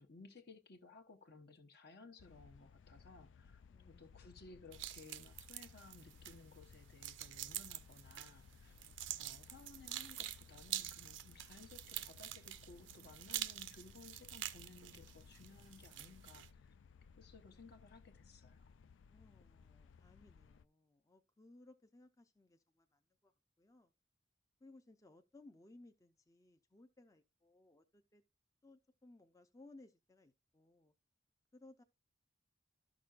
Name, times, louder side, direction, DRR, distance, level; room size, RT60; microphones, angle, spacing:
voice 1, 0.0-3.6 3.9-8.8 9.2-16.7 17.2-18.7, left 3 dB, 60° left, 1.0 m, -59 dB
sound 1, 2.2-20.6, left 6 dB, 75° left, 0.4 m, -61 dB
voice 2, 3.7-4.3 8.7-9.2 19.1-23.9 24.6-28.2 28.6-30.9 31.5-31.8, left 2 dB, 15° left, 0.5 m, -63 dB
sound 2, 4.7-16.5, right 13 dB, 75° right, 0.6 m, -47 dB
12.5 x 6.1 x 2.4 m
head